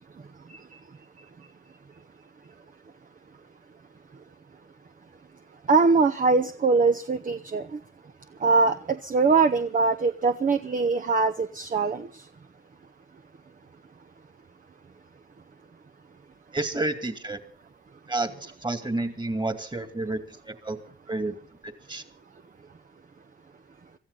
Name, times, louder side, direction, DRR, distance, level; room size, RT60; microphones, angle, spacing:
voice 1, 5.7-7.7 8.4-12.1, right 4 dB, 40° right, 7 dB, 1.0 m, -22 dB
voice 2, 16.5-17.4 18.1-20.8 21.1-21.3 21.6-22.0, right 2 dB, 20° right, 9 dB, 2.4 m, -30 dB
23.5 x 14.0 x 4.0 m, 0.42 s
cardioid pair, 80°, 20 cm